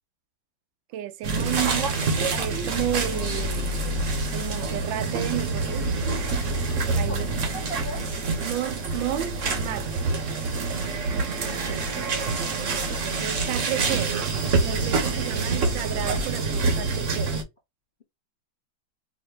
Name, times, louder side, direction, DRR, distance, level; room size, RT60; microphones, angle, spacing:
voice 1, 0.9-2.0 2.4-3.9 4.3-5.9 6.9-7.3 8.4-9.9 11.1-14.2 14.6-17.4, right 12 dB, 80° right, 1.3 m, -32 dB
sound 1, 1.2-17.4, right 3 dB, 50° right, 1.1 m, -26 dB
voice 2, 6.9-8.1, equal, 50° left, 0.6 m, -38 dB
5.0 x 2.6 x 2.2 m
omnidirectional pair, 2.2 m